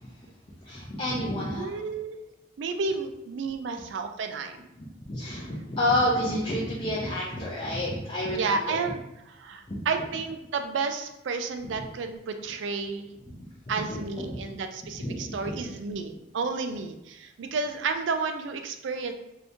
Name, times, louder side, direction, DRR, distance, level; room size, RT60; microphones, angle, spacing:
voice 1, 0.6-1.8 4.8-8.9 9.7-9.8 11.7-11.8 13.4-13.5 13.9-14.0 14.3-14.4 15.0-15.7, left 1 dB, 25° left, -6 dB, 0.5 m, -29 dB
voice 2, 1.6-2.2 2.6-4.6 8.3-9.0 9.3-13.1 13.7-19.1, right 4 dB, 70° right, 6 dB, 0.4 m, -31 dB
2.7 x 2.7 x 3.4 m, 0.89 s
head